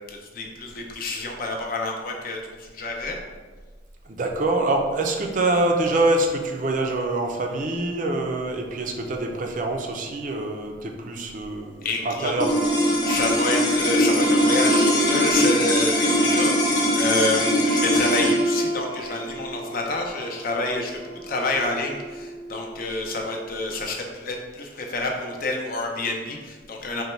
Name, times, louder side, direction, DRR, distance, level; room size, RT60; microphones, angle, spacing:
voice 1, 0.1-3.2 11.8-12.3 13.0-27.0, left 2 dB, 50° left, 1 dB, 0.5 m, -28 dB
voice 2, 4.1-12.5, right 2 dB, 45° right, 2 dB, 0.4 m, -25 dB
sound 1, 12.4-22.8, equal, 25° left, 0.8 m, -22 dB
3.9 x 2.2 x 4.3 m, 1.4 s
head